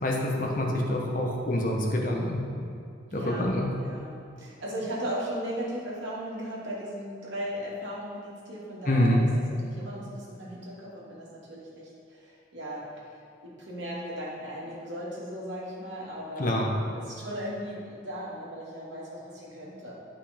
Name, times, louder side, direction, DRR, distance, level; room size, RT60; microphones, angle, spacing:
voice 1, 0.0-2.4 3.1-3.7 8.9-9.3 16.4-16.7, left 1 dB, 45° left, -1 dB, 1.2 m, -26 dB
voice 2, 3.1-4.1 4.4-9.2 9.6-13.2 13.4-16.6 16.9-20.0, equal, 70° right, -6 dB, 2.5 m, -37 dB
11.0 x 5.6 x 5.2 m, 2.4 s
head